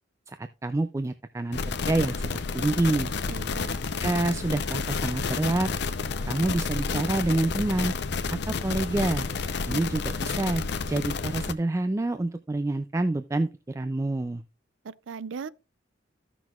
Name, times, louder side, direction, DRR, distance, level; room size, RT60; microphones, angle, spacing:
voice 1, 0.3-3.1 4.0-5.7 6.3-7.9 8.3-9.3 9.7-14.4, right 2 dB, 15° right, 0.3 m, -27 dB
sound 1, 1.5-11.5, left 4 dB, 65° left, 0.6 m, -30 dB
voice 2, 3.3-3.8 14.8-15.5, right 5 dB, 90° right, 0.4 m, -38 dB
15.0 x 6.0 x 2.3 m
head